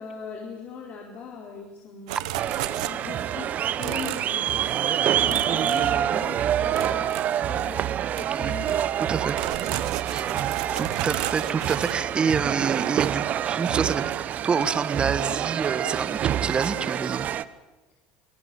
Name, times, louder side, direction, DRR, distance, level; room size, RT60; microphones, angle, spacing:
voice 1, 0.0-2.2 2.9-4.6 5.2-8.7, left 6 dB, 50° left, 0 dB, 4.5 m, -39 dB
sound 1, 2.1-3.3 3.8-4.3 4.6-4.9 5.3-6.4 6.7-7.8 8.1-8.3 8.6-12.0, right 15 dB, 85° right, 1.4 m, -34 dB
sound 2, 2.4-17.4, right 10 dB, 50° right, 1.0 m, -27 dB
voice 2, 9.0-9.4 10.1-10.3 10.8-17.3, right 5 dB, 30° right, 13 dB, 1.5 m, -27 dB
25.5 x 19.0 x 8.8 m, 1.1 s
supercardioid pair, 100°, 4 cm